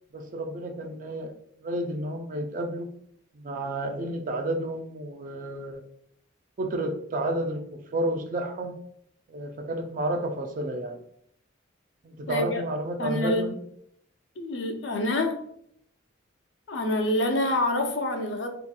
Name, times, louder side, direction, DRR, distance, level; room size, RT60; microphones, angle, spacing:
voice 1, 0.1-1.3 1.6-2.9 3.3-5.8 6.6-8.7 9.3-11.0 12.0-13.6, right 1 dB, 40° right, 0.3 m, -31 dB
voice 2, 12.3-12.6 13.0-13.4 14.4-15.4 16.7-18.5, left 1 dB, 65° left, 0.4 m, -26 dB
2.7 x 2.5 x 2.2 m
head